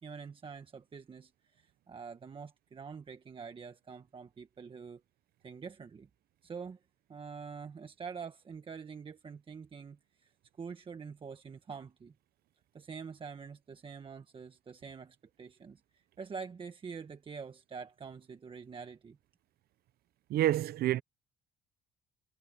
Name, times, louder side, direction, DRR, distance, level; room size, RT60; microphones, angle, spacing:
voice 1, 0.0-5.0 5.4-6.1 6.4-6.8 7.1-10.3 10.6-12.1 12.7-19.2, right 5 dB, 30° right, 1.4 m, -46 dB
voice 2, 20.3-21.0, right 13 dB, 65° right, 0.7 m, -28 dB
cardioid pair, 110°, 17 cm